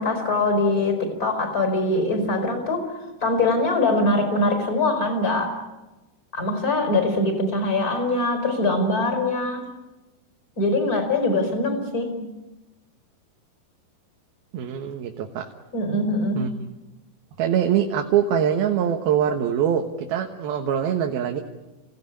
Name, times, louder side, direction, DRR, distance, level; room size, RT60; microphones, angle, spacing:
voice 1, 0.0-2.9 3.2-5.6 6.3-9.6 10.6-12.3 15.7-16.5, left 2 dB, 25° left, 6 dB, 5.0 m, -23 dB
voice 2, 14.5-15.5 16.3-16.5 17.4-21.4, right 9 dB, 90° right, 3 dB, 3.3 m, -23 dB
29.5 x 17.5 x 9.9 m, 1.1 s
omnidirectional pair, 4.2 m